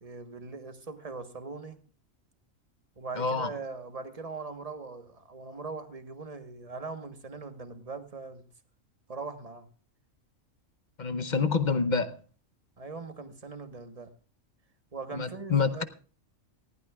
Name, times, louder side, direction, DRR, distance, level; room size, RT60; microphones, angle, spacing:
voice 1, 0.0-1.8 3.0-8.5 9.1-9.7 12.8-14.1 14.9-15.8, right 4 dB, 30° right, 1.2 m, -41 dB
voice 2, 3.2-3.5 11.0-12.2 15.1-15.8, left 5 dB, 40° left, 0.8 m, -27 dB
19.0 x 15.0 x 2.3 m
omnidirectional pair, 1.4 m